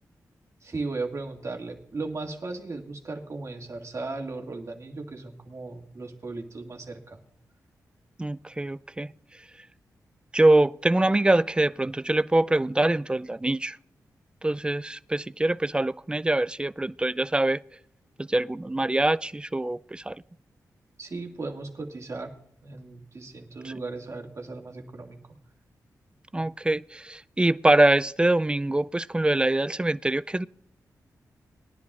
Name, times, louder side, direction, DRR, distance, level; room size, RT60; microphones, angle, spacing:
voice 1, 0.6-7.2 21.0-22.3 22.6-25.2, right 3 dB, 45° right, 2.1 m, -36 dB
voice 2, 8.2-9.1 10.3-13.8 14.4-17.6 18.3-20.1 26.3-30.5, right 1 dB, 15° right, 0.3 m, -24 dB
20.5 x 10.5 x 2.4 m
cardioid pair, 60°, 7 cm